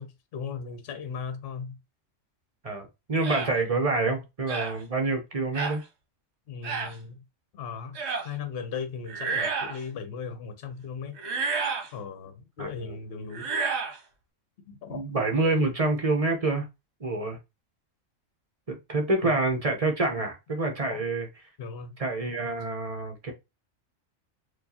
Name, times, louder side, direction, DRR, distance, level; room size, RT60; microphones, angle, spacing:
voice 1, 0.0-1.8 6.5-7.2 7.5-8.0 8.2-11.2 11.9-13.5 14.7-15.2 19.2-19.3 20.1-20.3 20.9-21.0 21.6-22.0, left 6 dB, 55° left, 0.8 m, -37 dB
voice 2, 2.6-5.8 12.6-13.0 14.9-16.7 17.0-17.4 18.7-21.3 22.0-23.3, right 2 dB, 30° right, 0.8 m, -27 dB
sound 1, 3.2-3.5 4.5-4.8 5.6-5.8 6.6-6.9 8.0-8.3 9.1-9.8 11.2-11.9 13.3-14.0, right 5 dB, 60° right, 1.1 m, -30 dB
4.3 x 2.4 x 2.8 m
omnidirectional pair, 1.3 m